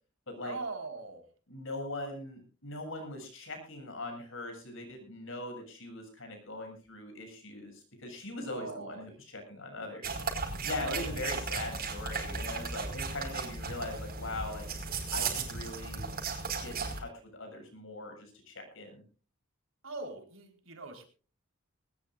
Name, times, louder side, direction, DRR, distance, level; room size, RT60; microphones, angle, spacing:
voice 1, 0.4-1.3 8.5-9.1 10.8-11.1 19.8-21.1, right 3 dB, 75° right, 5 dB, 4.4 m, -41 dB
voice 2, 1.5-10.2 10.6-14.7 15.1-16.1 16.6-19.0, left 2 dB, 70° left, 5 dB, 7.6 m, -41 dB
sound 1, 10.0-17.0, right 4 dB, 45° right, 5.0 m, -36 dB
20.5 x 19.5 x 2.5 m, 0.36 s
head